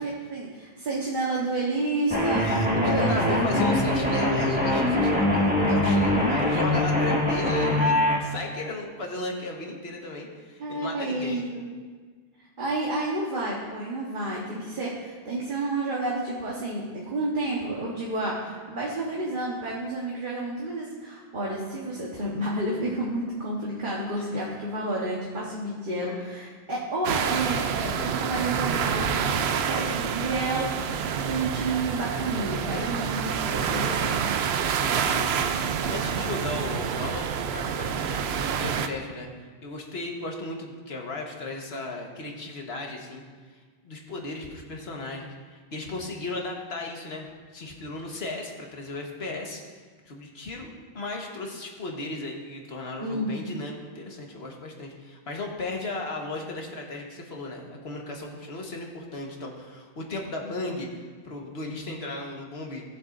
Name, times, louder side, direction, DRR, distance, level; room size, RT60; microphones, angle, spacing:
voice 1, 0.0-2.4 2.7-3.2 3.4-4.4 10.6-11.7 12.6-30.9 31.2-34.2 53.0-53.5, right 2 dB, 55° right, -5 dB, 1.4 m, -30 dB
sound 1, 2.1-8.2, left 1 dB, 10° right, 1.7 m, -23 dB
voice 2, 2.3-11.4 24.3-24.4 35.0-35.5 35.9-39.3 39.6-43.2 43.8-49.6 50.1-62.8, left 2 dB, 85° left, 0 dB, 1.6 m, -36 dB
sound 2, 27.0-38.9, right 7 dB, 85° right, 0.8 m, -27 dB
18.0 x 7.5 x 2.6 m, 1.5 s
omnidirectional pair, 1.0 m